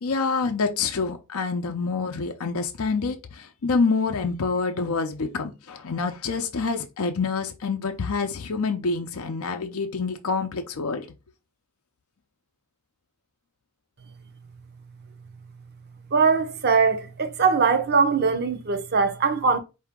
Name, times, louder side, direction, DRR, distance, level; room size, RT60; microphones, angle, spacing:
voice 1, 0.0-11.1, left 4 dB, 65° left, 0.5 m, -27 dB
voice 2, 16.1-19.6, right 5 dB, 45° right, 0.7 m, -21 dB
4.7 x 2.7 x 3.5 m
head